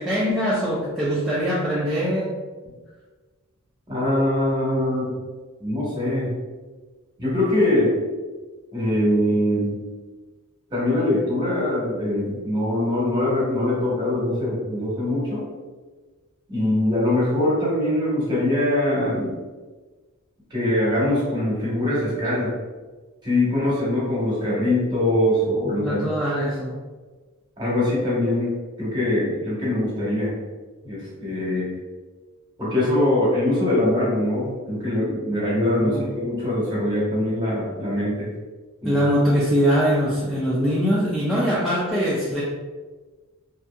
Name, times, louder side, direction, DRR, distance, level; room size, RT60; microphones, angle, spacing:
voice 1, 0.0-2.4 25.6-26.8 35.8-36.0 38.8-42.4, equal, ahead, -9 dB, 0.3 m, -22 dB
voice 2, 3.9-5.1 5.6-6.3 7.2-8.0 8.7-9.8 10.7-15.5 16.5-19.4 20.5-22.5 23.2-26.0 27.6-30.4 30.8-31.7 32.6-38.3 38.8-39.0, left 1 dB, 20° right, -7 dB, 1.0 m, -22 dB
2.6 x 2.6 x 2.3 m, 1.3 s
head